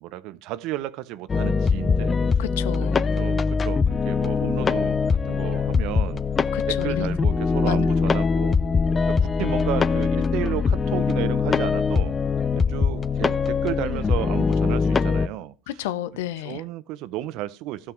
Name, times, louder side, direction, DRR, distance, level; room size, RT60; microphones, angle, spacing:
voice 1, 0.0-2.1 3.2-3.8 4.1-5.0 5.3-6.2 6.7-8.6 9.4-10.6 10.9-12.1 12.5-15.5 16.4-17.8, right 15 dB, 65° right, 0.8 m, -32 dB
sound 1, 1.3-15.3, left 5 dB, 30° left, 0.8 m, -22 dB
voice 2, 2.4-3.0 6.5-7.1 7.6-7.9 15.7-16.6, left 13 dB, 80° left, 0.8 m, -31 dB
15.5 x 6.2 x 4.6 m
hypercardioid pair, 75°, 0 cm